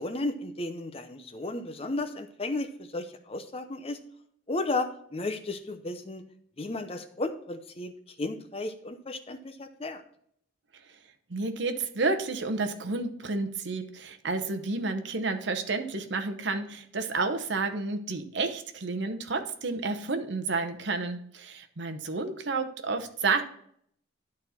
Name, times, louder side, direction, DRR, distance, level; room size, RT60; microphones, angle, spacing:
voice 1, 0.0-4.0 4.5-6.2 6.6-10.0, left 2 dB, 30° left, 8 dB, 0.6 m, -34 dB
voice 2, 11.3-23.4, right 3 dB, 60° right, 6 dB, 0.8 m, -30 dB
11.5 x 4.2 x 4.2 m, 0.65 s
head